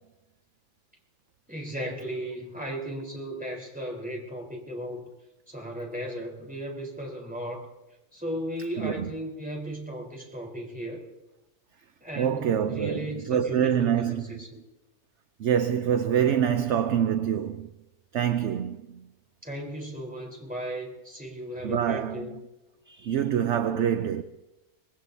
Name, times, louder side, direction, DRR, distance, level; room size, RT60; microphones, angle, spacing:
voice 1, 1.5-5.1 5.5-7.7 8.1-11.0 12.0-14.6 19.4-22.3, equal, 5° right, 3.9 m, -36 dB
voice 2, 8.8-9.1 12.2-14.4 15.4-17.7 18.1-19.1 21.6-22.4 22.9-24.2, right 9 dB, 60° right, 0.9 m, -26 dB
25.0 x 19.5 x 2.7 m
omnidirectional pair, 1.6 m